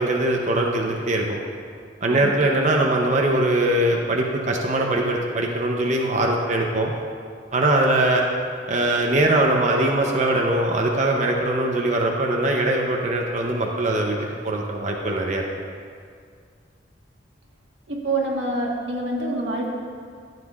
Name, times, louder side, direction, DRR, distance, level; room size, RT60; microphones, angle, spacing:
voice 1, 0.0-1.4 2.0-6.9 7.5-8.3 8.7-14.2 14.4-15.4, right 1 dB, 40° right, 0 dB, 0.7 m, -21 dB
voice 2, 2.1-2.4 17.9-19.7, right 2 dB, 90° right, -2 dB, 1.5 m, -26 dB
13.5 x 8.2 x 2.4 m, 2.2 s
head